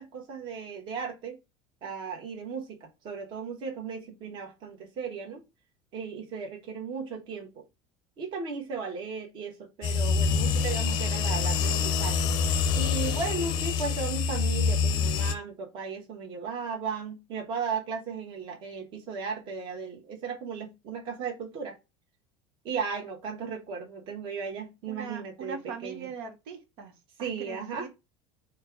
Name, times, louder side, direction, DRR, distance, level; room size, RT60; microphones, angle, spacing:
voice 1, 0.0-1.4 1.8-5.4 5.9-7.6 8.2-12.2 12.7-21.8 22.6-26.1 27.2-27.9, right 5 dB, 40° right, 1.3 m, -36 dB
sound 1, 9.8-15.3, left 5 dB, 40° left, 0.5 m, -26 dB
voice 2, 24.9-27.9, right 5 dB, 85° right, 1.2 m, -41 dB
4.5 x 2.5 x 4.5 m
cardioid pair, 165°, 12 cm